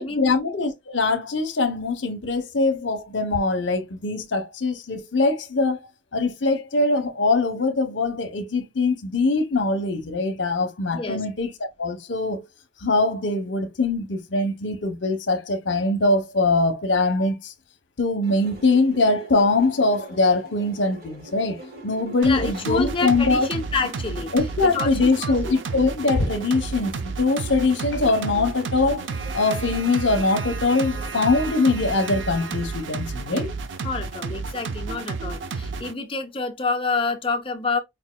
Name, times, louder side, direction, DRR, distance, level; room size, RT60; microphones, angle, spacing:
voice 1, 0.0-5.8 6.1-11.5 11.8-12.4 12.8-17.5 18.0-21.6 21.8-23.5 24.3-29.0 29.3-33.5, left 3 dB, 70° left, 0.8 m, -22 dB
sound 1, 18.2-31.6, right 1 dB, 50° right, 1.4 m, -45 dB
voice 2, 22.2-24.3 24.6-25.6 33.8-37.8, left 4 dB, 25° left, 0.6 m, -28 dB
sound 2, 22.2-35.9, right 4 dB, 70° right, 0.5 m, -31 dB
5.3 x 2.6 x 2.2 m
head